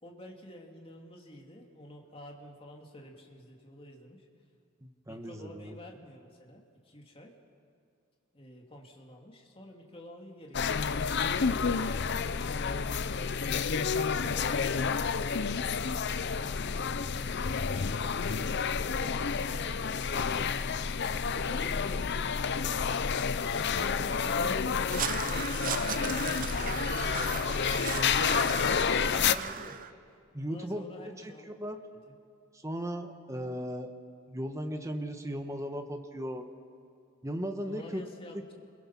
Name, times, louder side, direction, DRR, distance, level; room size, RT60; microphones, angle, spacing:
voice 1, 0.0-4.3 5.1-7.3 8.3-11.7 14.1-15.5 16.3-17.4 17.9-21.0 21.3-22.4 23.5-29.8 30.5-31.5 32.1-32.2 37.7-38.6, equal, 25° left, 0 dB, 2.5 m, -49 dB
voice 2, 4.8-5.7 30.3-30.9 31.2-31.8 32.6-33.9 34.3-36.5 37.2-38.0 38.3-38.4, equal, 15° right, 6 dB, 1.3 m, -36 dB
sound 1, 10.5-29.3, left 6 dB, 55° left, 0.6 m, -30 dB
Crow, 24.9-29.9, right 8 dB, 40° right, 0.6 m, -36 dB
28.5 x 22.0 x 5.8 m, 2.3 s
head